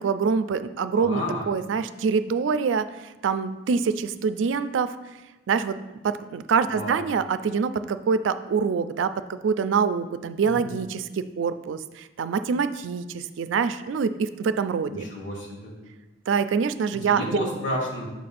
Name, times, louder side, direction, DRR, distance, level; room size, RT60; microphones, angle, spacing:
voice 1, 0.0-2.9 3.2-5.0 5.5-5.8 6.0-15.0 16.3-17.2, right 5 dB, 85° right, 11 dB, 0.3 m, -25 dB
voice 2, 0.9-1.5 6.7-7.0 10.4-10.7 14.9-15.7 16.9-18.1, equal, 75° left, -2 dB, 1.7 m, -31 dB
7.1 x 2.5 x 5.7 m, 1.1 s
head